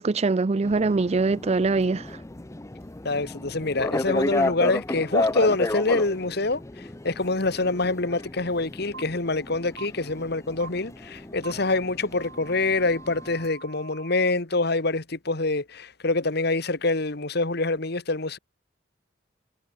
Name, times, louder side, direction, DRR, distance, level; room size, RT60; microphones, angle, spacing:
voice 1, 0.0-2.1, right 3 dB, 35° right, 0.5 m, -23 dB
sound 1, 0.6-13.5, left 2 dB, 15° left, 0.7 m, -33 dB
voice 2, 3.0-18.4, left 3 dB, 60° left, 2.0 m, -26 dB
sound 2, 8.9-9.0 9.8-9.9 10.6-10.7 11.4-11.5 12.2-14.3, right 4 dB, 75° right, 3.1 m, -44 dB
head